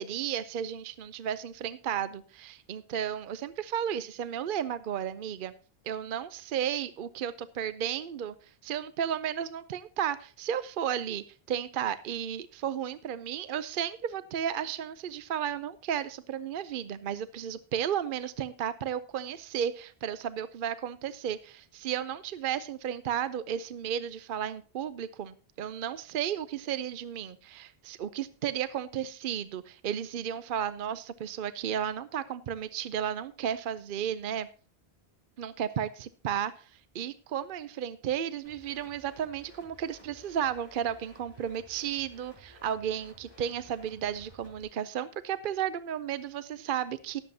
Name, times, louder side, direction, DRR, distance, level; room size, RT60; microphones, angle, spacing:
voice 1, 0.0-5.5 5.8-34.5 35.4-47.2, right 9 dB, 60° right, 14 dB, 0.7 m, -33 dB
sound 1, 38.4-44.6, right 1 dB, 25° right, 5.8 m, -56 dB
18.5 x 7.6 x 2.7 m, 0.38 s
omnidirectional pair, 1.1 m